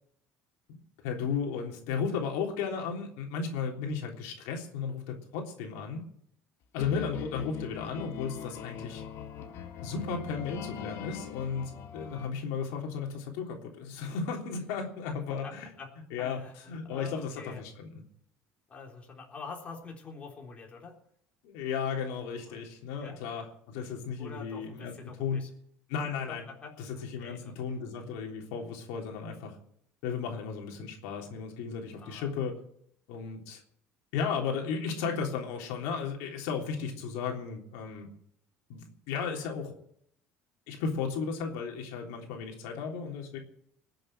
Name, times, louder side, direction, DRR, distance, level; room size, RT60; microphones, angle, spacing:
voice 1, 0.7-6.0 6.7-9.0 9.8-15.7 16.1-18.0 21.4-25.4 25.9-26.4 26.8-29.6 30.0-32.6 33.1-33.6 34.1-38.1 38.7-39.7 40.7-43.4, left 6 dB, 85° left, 1 dB, 3.5 m, -35 dB
sound 1, 6.8-12.3, left 8 dB, 55° left, 2.3 m, -41 dB
voice 2, 15.4-15.9 16.2-17.6 18.7-21.0 22.4-22.6 23.0-23.2 24.2-25.5 26.3-26.7 27.2-27.5 32.0-32.3, left 4 dB, 25° left, 0 dB, 3.8 m, -46 dB
20.5 x 7.8 x 7.6 m, 0.69 s
cardioid pair, 140°, 5 cm